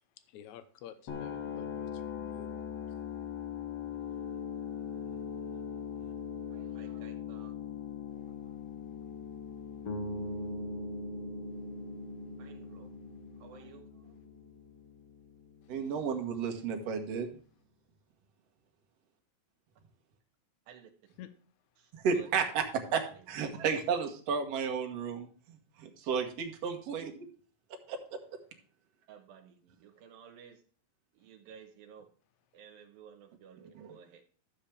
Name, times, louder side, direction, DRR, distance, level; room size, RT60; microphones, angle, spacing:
voice 1, 0.3-2.5 21.2-21.3, left 11 dB, 70° left, 11 dB, 1.9 m, -50 dB
sound 1, 1.1-17.0, left 8 dB, 55° left, 2.7 m, -42 dB
voice 2, 6.5-7.5 8.1-8.6 12.4-12.9 13.4-14.2 20.7-20.9 21.8-22.3 23.1-23.2 29.1-30.6 31.1-32.1 32.5-34.2, right 7 dB, 85° right, 5 dB, 2.8 m, -55 dB
sound 2, 9.8-14.0, equal, 35° left, 1.8 m, -41 dB
voice 3, 15.7-17.3 22.0-27.3 27.9-28.2 33.6-34.0, right 6 dB, 55° right, 4 dB, 2.0 m, -33 dB
12.0 x 7.3 x 3.4 m, 0.43 s
omnidirectional pair, 4.1 m